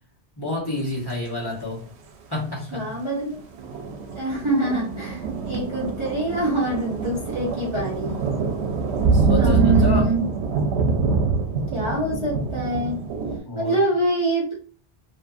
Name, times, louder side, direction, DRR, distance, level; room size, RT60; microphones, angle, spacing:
voice 1, 0.4-1.8 2.3-2.8 9.1-10.1 13.5-13.8, left 2 dB, 25° left, -8 dB, 1.1 m, -29 dB
voice 2, 2.7-3.4 4.1-8.2 9.4-10.3 11.7-13.0 13.5-14.5, right 1 dB, 35° right, -6 dB, 0.6 m, -25 dB
sound 1, 3.5-13.4, right 4 dB, 85° right, 0.8 m, -24 dB
2.6 x 2.5 x 2.4 m, 0.41 s
omnidirectional pair, 1.1 m